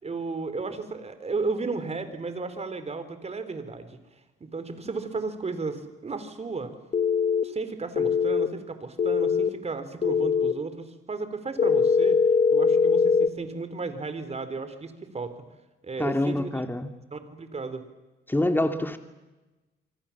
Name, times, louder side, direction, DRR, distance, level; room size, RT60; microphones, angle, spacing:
voice 1, 0.0-4.0 4.4-6.8 7.4-12.2 12.5-15.3 15.8-16.6 17.1-17.8, right 4 dB, 30° right, 11 dB, 3.8 m, -34 dB
sound 1, 6.9-7.4 8.0-8.5 9.0-9.5 10.0-10.5 11.6-13.3, left 6 dB, 40° left, 1.5 m, -21 dB
voice 2, 16.0-16.9 18.3-19.0, left 1 dB, 10° left, 8 dB, 2.3 m, -26 dB
27.0 x 24.5 x 7.3 m, 1.1 s
cardioid pair, 90°, 20 cm